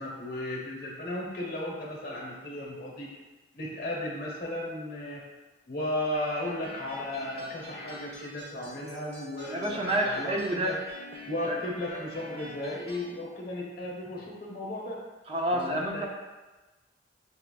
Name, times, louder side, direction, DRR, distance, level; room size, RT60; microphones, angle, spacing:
voice 1, 0.0-3.1 3.5-5.2 5.7-10.7 11.2-15.0 15.5-16.1, left 1 dB, 55° left, -3 dB, 0.9 m, -35 dB
sound 1, 6.1-13.1, equal, 75° right, 1.2 m, -46 dB
voice 2, 9.5-10.8 11.4-11.6 15.3-16.1, right 1 dB, 30° right, 0 dB, 0.5 m, -29 dB
5.6 x 2.3 x 2.2 m, 1.2 s
head